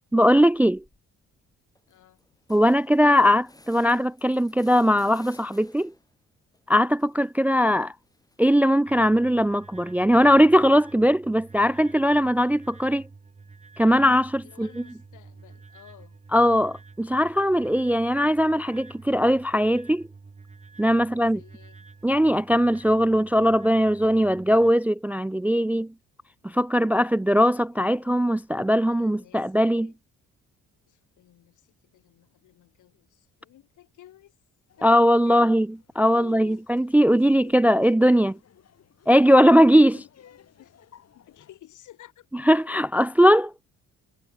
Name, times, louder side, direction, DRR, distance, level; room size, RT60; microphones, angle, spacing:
voice 1, 0.1-0.8 2.5-5.9 6.7-7.9 8.4-13.0 13.8-14.7 16.3-20.0 20.8-21.4 22.0-25.9 26.4-29.9 34.8-35.7 36.0-38.4 39.1-39.9 42.5-43.5, equal, 5° right, 0.3 m, -20 dB
sound 1, 0.5-1.0 1.4-1.5 1.7-6.2 6.5-8.7, left 2 dB, 10° left, 3.9 m, -56 dB
voice 2, 1.9-2.3 14.4-16.2 21.0-21.9 27.7-28.2 28.7-30.0 30.9-34.3 34.8-35.5 36.1-36.9 40.6-40.9 41.1-42.3, left 13 dB, 80° left, 6.3 m, -53 dB
sound 2, 8.9-24.7, right 4 dB, 25° right, 2.1 m, -48 dB
Laughter, 34.7-41.6, left 9 dB, 55° left, 3.6 m, -57 dB
cardioid pair, 90°, 30 cm